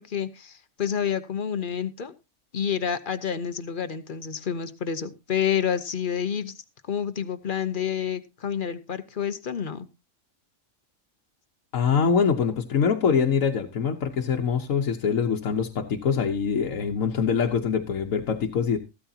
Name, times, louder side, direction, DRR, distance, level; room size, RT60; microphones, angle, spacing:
voice 1, 0.0-2.1 2.5-6.5 6.9-9.9, left 8 dB, 45° left, 13 dB, 0.9 m, -29 dB
voice 2, 11.7-18.8, left 6 dB, 85° left, 2 dB, 1.4 m, -24 dB
14.5 x 13.0 x 2.8 m, 0.26 s
omnidirectional pair, 1.3 m